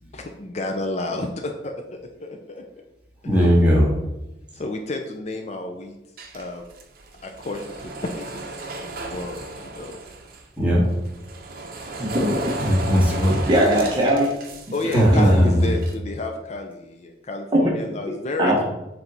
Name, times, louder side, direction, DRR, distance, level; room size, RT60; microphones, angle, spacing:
voice 1, 0.0-2.6 4.5-6.0 6.3-6.6 7.2-9.9 14.7-18.6, left 2 dB, 40° left, 4 dB, 0.5 m, -31 dB
voice 2, 3.2-3.9 10.6-10.8 12.6-13.4 14.9-15.7, equal, 10° right, -6 dB, 1.9 m, -17 dB
sound 1, 6.2-10.5 10.9-16.0, right 2 dB, 55° right, 0.8 m, -35 dB
voice 3, 12.0-12.6 13.1-14.3 17.5-17.6 18.4-18.6, equal, 25° right, -2 dB, 0.9 m, -20 dB
7.2 x 3.4 x 3.9 m, 0.96 s
head